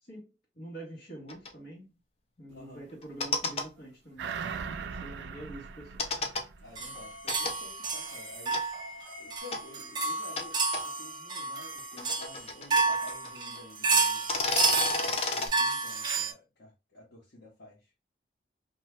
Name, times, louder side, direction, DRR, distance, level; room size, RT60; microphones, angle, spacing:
voice 1, 0.0-1.9 2.4-6.1, right 1 dB, 60° left, 1.2 m, -46 dB
sound 1, 1.3-1.5 3.0-3.7 6.0-6.4 7.3-7.5 8.5-8.6 9.5-9.6 10.4-10.5 10.7-10.8 11.7-13.3 13.6-13.7 14.1-15.5, left 3 dB, 35° left, 0.4 m, -31 dB
voice 2, 2.5-2.8 6.6-8.6 9.2-14.3 15.0-17.9, left 2 dB, 85° left, 1.0 m, -51 dB
sound 2, 4.2-7.1 7.5-7.6, right 6 dB, 85° right, 0.3 m, -39 dB
sound 3, 6.8-16.3, right 4 dB, 25° right, 0.5 m, -31 dB
2.6 x 2.3 x 3.0 m
head